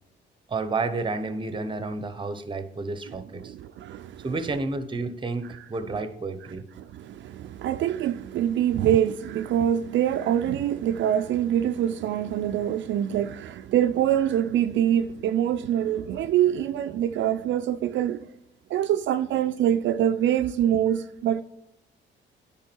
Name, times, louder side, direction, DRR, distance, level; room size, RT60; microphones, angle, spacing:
voice 1, 0.5-3.5 4.2-6.6, right 3 dB, 25° right, 0.8 m, -30 dB
voice 2, 3.4-4.3 6.8-18.2 18.7-21.4, right 10 dB, 70° right, 0.4 m, -25 dB
9.8 x 3.7 x 4.5 m
cardioid pair, 90°, 20 cm